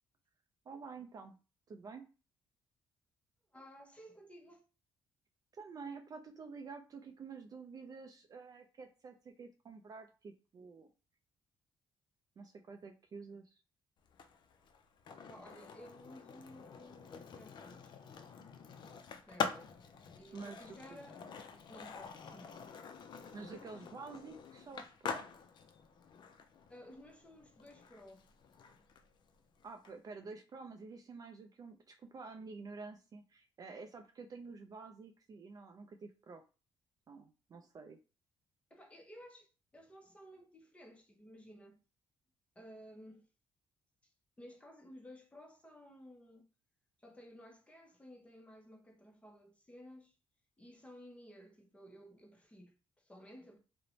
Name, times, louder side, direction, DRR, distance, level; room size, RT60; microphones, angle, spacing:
voice 1, 0.7-1.4 1.7-2.1 5.5-10.9 12.4-13.6 20.3-21.0 23.3-25.2 29.6-36.4 37.1-38.0, right 4 dB, 40° right, 0.3 m, -49 dB
voice 2, 3.5-4.6 15.2-18.0 19.3-19.8 20.2-21.2 21.7-22.7 23.5-23.7 26.7-28.3 38.7-41.8 42.6-43.3 44.0-44.1 44.4-46.5 47.0-50.1 50.6-53.6, equal, 10° left, 0.6 m, -55 dB
Skateboard, 14.0-29.9, left 6 dB, 50° left, 0.4 m, -46 dB
2.5 x 2.1 x 3.0 m
cardioid pair, 95°, 10 cm